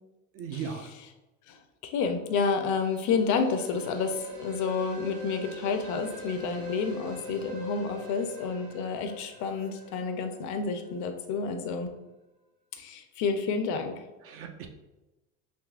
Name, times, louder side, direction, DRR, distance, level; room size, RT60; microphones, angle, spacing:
voice 1, 0.3-0.9 14.2-14.7, right 6 dB, 40° right, 5 dB, 0.4 m, -37 dB
voice 2, 1.5-11.9 12.8-13.9, left 5 dB, 50° left, 6 dB, 0.5 m, -30 dB
sound 1, 2.2-11.0, left 1 dB, 75° right, 1.4 m, -44 dB
3.6 x 2.6 x 2.4 m, 1.0 s
supercardioid pair, 95°, 37 cm